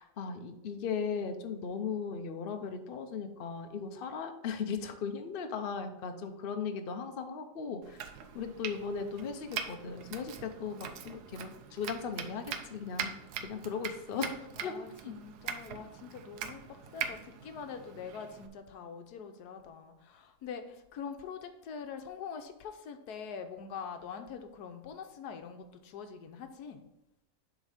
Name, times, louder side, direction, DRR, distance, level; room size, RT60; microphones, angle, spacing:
voice 1, 0.0-13.1 13.4-14.7 15.0-15.1, left 6 dB, 55° left, 6 dB, 0.6 m, -37 dB
Domestic sounds home sounds, 7.8-18.5, right 7 dB, 75° right, 1.2 m, -42 dB
voice 2, 14.6-26.8, left 6 dB, 75° left, 7 dB, 1.2 m, -44 dB
7.3 x 3.7 x 5.0 m, 0.94 s
omnidirectional pair, 1.8 m